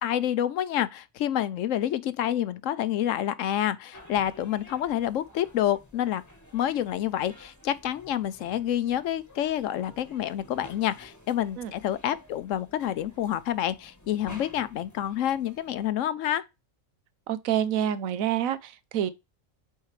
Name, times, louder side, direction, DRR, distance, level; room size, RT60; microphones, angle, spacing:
voice 1, 0.0-6.2 6.5-16.4, left 11 dB, 75° left, 1.0 m, -28 dB
sound 1, 3.9-15.9, left 1 dB, 15° left, 1.2 m, -52 dB
voice 2, 17.3-19.1, right 10 dB, 90° right, 1.1 m, -27 dB
8.1 x 4.6 x 3.2 m
omnidirectional pair, 1.4 m